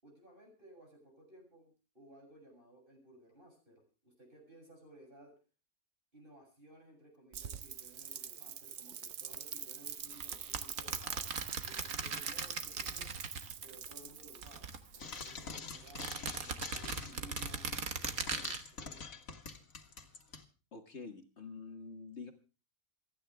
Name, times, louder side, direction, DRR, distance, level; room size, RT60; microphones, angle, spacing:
voice 1, 0.0-5.3 6.1-11.3 11.6-13.1 13.6-19.1, right 1 dB, 35° right, 1 dB, 7.7 m, -58 dB
Rain, 7.3-15.4, right 8 dB, 55° right, 1.1 m, -45 dB
sound 1, 10.1-13.9 14.2-15.3 15.8-18.6, right 5 dB, 75° right, 1.8 m, -39 dB
Frying (food), 15.0-20.4, left 4 dB, 70° left, 2.2 m, -45 dB
voice 2, 20.7-22.3, left 4 dB, 50° left, 5 dB, 1.9 m, -47 dB
28.0 x 10.0 x 3.4 m, 0.34 s
omnidirectional pair, 1.5 m